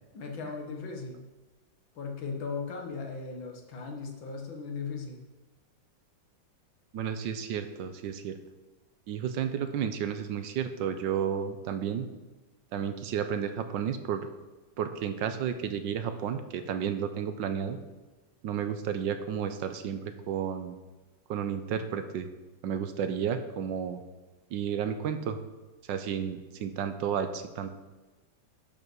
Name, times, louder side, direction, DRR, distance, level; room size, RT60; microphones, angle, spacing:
voice 1, 0.1-1.2 2.0-5.3, left 4 dB, 85° left, 2 dB, 2.2 m, -37 dB
voice 2, 6.9-8.4 9.1-12.1 12.7-14.3 14.8-17.8 18.4-20.8 21.3-22.3 22.6-24.0 24.5-25.4 25.9-27.7, right 8 dB, 75° right, 9 dB, 1.4 m, -32 dB
11.0 x 5.5 x 6.3 m, 1.2 s
omnidirectional pair, 2.1 m